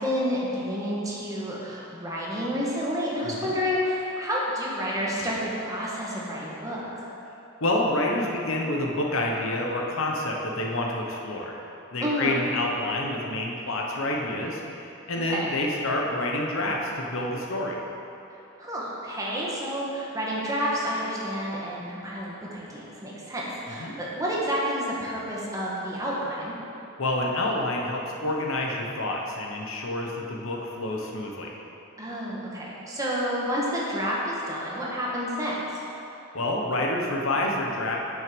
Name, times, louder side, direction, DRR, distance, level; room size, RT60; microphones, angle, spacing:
voice 1, 0.0-7.1 12.0-12.4 15.3-15.5 18.6-26.5 32.0-35.8, equal, 15° right, -5 dB, 1.6 m, -29 dB
voice 2, 7.6-11.6 11.9-17.8 23.8-23.9 27.0-31.5 36.3-38.0, left 1 dB, 65° left, -1 dB, 1.1 m, -28 dB
8.9 x 6.5 x 5.3 m, 2.8 s
head